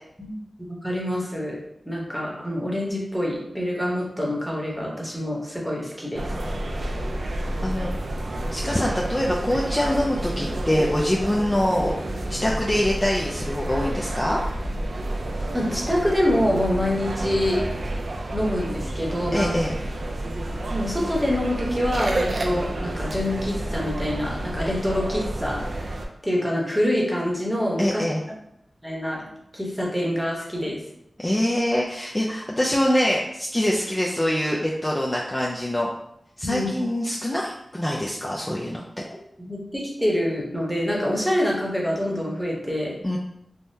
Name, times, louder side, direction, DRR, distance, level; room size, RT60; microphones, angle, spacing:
voice 1, 0.2-1.6 1.8-6.3 15.5-17.6 18.3-19.6 20.7-28.0 28.8-29.3 29.5-30.8 36.4-36.7 39.4-43.0, left 1 dB, 5° right, -3 dB, 0.9 m, -26 dB
sound 1, 6.1-26.1, right 1 dB, 70° right, 0.3 m, -30 dB
voice 2, 7.6-7.9 8.5-11.9 12.3-14.4 19.3-19.8 27.8-28.2 31.2-35.9 36.4-38.8 43.0-43.2, left 1 dB, 20° left, -3 dB, 0.4 m, -24 dB
3.4 x 2.1 x 2.7 m, 0.78 s
wide cardioid pair, 70°, 0 cm